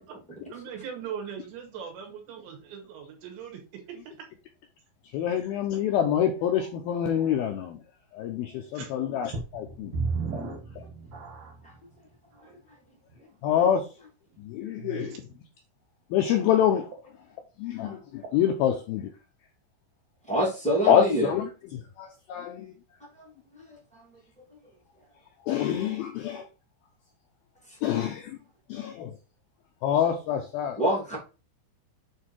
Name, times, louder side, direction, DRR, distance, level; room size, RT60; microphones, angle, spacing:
voice 1, 0.5-3.8 4.2-4.3 8.7-8.9 10.3-10.5 14.8-15.2, right 7 dB, 80° right, 4.2 m, -40 dB
voice 2, 5.1-7.8 8.1-9.9 13.4-13.9 14.4-15.2 16.1-16.9 17.6-19.1 20.8-22.7 25.5-26.4 27.8-28.4 28.7-29.1 29.8-30.8, left 9 dB, 85° left, 2.2 m, -26 dB
sound 1, 9.3-11.8 12.4-12.5 13.1-13.2, right 4 dB, 55° right, 2.4 m, -33 dB
voice 3, 20.3-21.3 23.2-23.3 23.7-24.0 30.8-31.2, right 1 dB, 5° left, 1.3 m, -26 dB
8.6 x 3.6 x 4.5 m
omnidirectional pair, 5.2 m